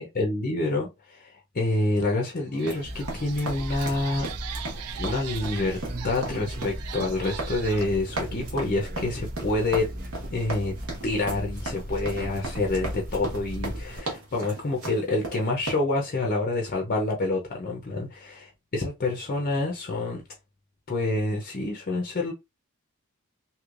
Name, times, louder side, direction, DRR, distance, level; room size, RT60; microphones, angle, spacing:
voice 1, 0.0-4.3 5.0-5.8 6.0-9.9 10.3-10.7 11.0-18.4 18.7-20.2 20.9-22.3, left 2 dB, 40° left, 0.6 m, -27 dB
sound 1, 2.0-2.1 2.5-7.8, right 10 dB, 85° right, 0.4 m, -41 dB
sound 2, 2.6-15.7, right 2 dB, 70° right, 1.3 m, -37 dB
sound 3, 2.8-14.0, equal, 40° right, 0.6 m, -37 dB
3.2 x 2.8 x 2.4 m
head